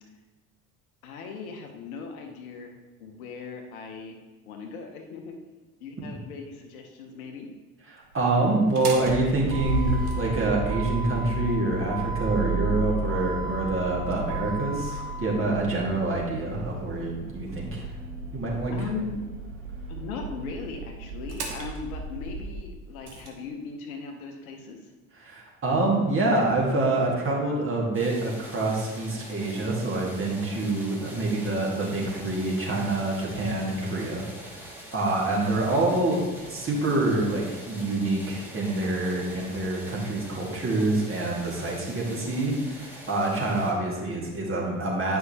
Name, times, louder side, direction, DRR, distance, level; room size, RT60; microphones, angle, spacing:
voice 1, 1.0-2.7 3.0-4.2 4.5-5.3 5.8-7.5 18.7-19.2 19.9-24.9, left 5 dB, 65° left, 3 dB, 1.1 m, -38 dB
voice 2, 7.9-17.9 18.3-18.7 25.2-36.2 36.5-45.2, right 2 dB, 30° right, -3 dB, 2.1 m, -26 dB
Motor vehicle (road), 8.6-23.3, right 3 dB, 75° right, 1.2 m, -32 dB
sound 1, 27.9-43.7, equal, 5° right, 1.8 m, -44 dB
9.4 x 5.6 x 2.9 m, 1.2 s
figure-of-eight pair, 60°, 45 cm